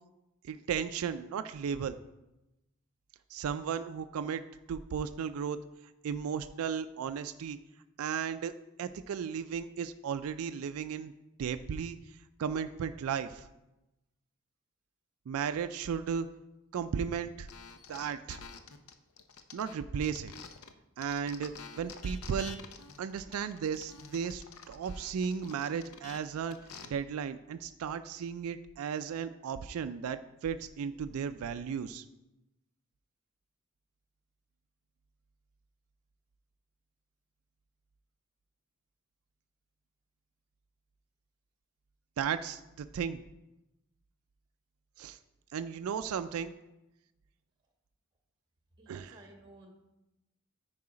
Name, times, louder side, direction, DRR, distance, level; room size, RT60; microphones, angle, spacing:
voice 1, 0.4-2.0 3.3-4.4 4.7-5.6 6.0-7.6 8.0-8.5 8.8-11.1 11.4-13.5 15.3-16.3 16.7-17.5 17.9-18.4 19.5-20.3 21.0-22.6 23.0-26.6 26.8-32.0 42.2-43.2 45.0-45.2 45.5-46.5 48.9-49.1, right 7 dB, 85° right, 10 dB, 0.3 m, -35 dB
sound 1, 17.5-20.7 21.0-26.9, left 5 dB, 80° left, 0.7 m, -49 dB
voice 2, 48.8-49.7, right 2 dB, 20° right, 2 dB, 1.3 m, -55 dB
9.5 x 4.8 x 4.9 m, 0.97 s
head